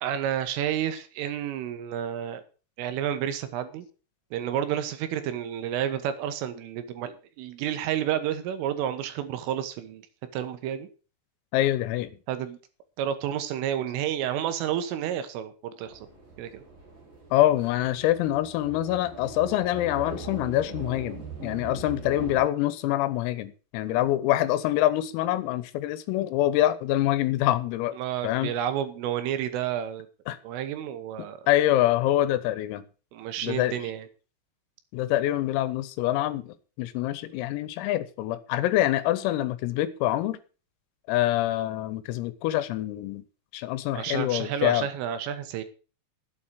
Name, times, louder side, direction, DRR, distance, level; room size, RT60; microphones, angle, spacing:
voice 1, 0.0-2.4 2.8-3.9 4.3-10.0 10.3-10.9 12.3-12.6 13.0-16.0 16.4-16.6 28.0-30.1 30.4-31.4 33.1-34.1 43.9-45.6, right 10 dB, 75° right, 3.6 m, -30 dB
voice 2, 11.5-12.2 17.3-27.9 28.2-28.5 30.3-30.4 31.5-32.9 33.4-33.9 34.9-40.4 41.1-43.2 43.5-44.9, left 14 dB, 85° left, 3.7 m, -25 dB
sound 1, 15.8-22.4, right 4 dB, 30° right, 5.3 m, -41 dB
11.5 x 8.5 x 6.2 m
omnidirectional pair, 6.0 m